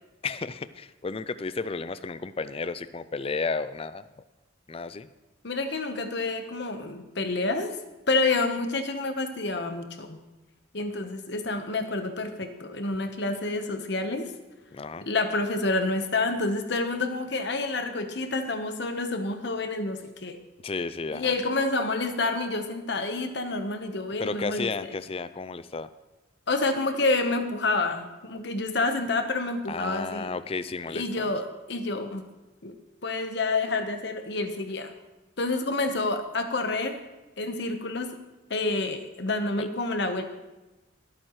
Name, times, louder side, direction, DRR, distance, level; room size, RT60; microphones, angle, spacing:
voice 1, 0.2-4.1 4.7-5.1 14.7-15.1 20.6-21.3 24.2-25.9 29.7-31.3 39.6-39.7, left 4 dB, 30° left, 13 dB, 0.4 m, -33 dB
voice 2, 5.4-7.7 8.1-10.2 10.7-14.3 15.0-20.4 21.1-24.7 26.5-30.3 30.9-32.3 32.6-32.7 33.0-34.9 35.4-37.0 37.4-38.2 38.5-40.2, left 3 dB, 60° left, 7 dB, 1.2 m, -28 dB
25.0 x 8.8 x 3.2 m, 1.1 s
head